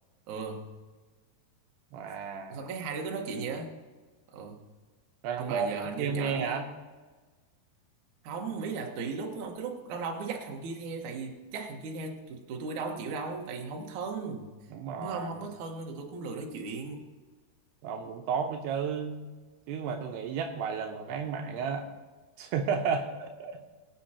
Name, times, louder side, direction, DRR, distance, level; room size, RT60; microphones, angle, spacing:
voice 1, 0.3-0.7 2.5-3.8 4.3-4.6 5.4-6.7 8.2-14.6 15.0-17.1, right 4 dB, 60° right, 1 dB, 2.2 m, -37 dB
voice 2, 1.9-2.6 5.2-5.7 6.0-6.7 14.7-15.4 17.8-19.2 19.7-21.9 22.4-23.7, right 6 dB, 80° right, 4 dB, 2.8 m, -32 dB
22.0 x 8.7 x 2.9 m, 1.3 s
omnidirectional pair, 4.9 m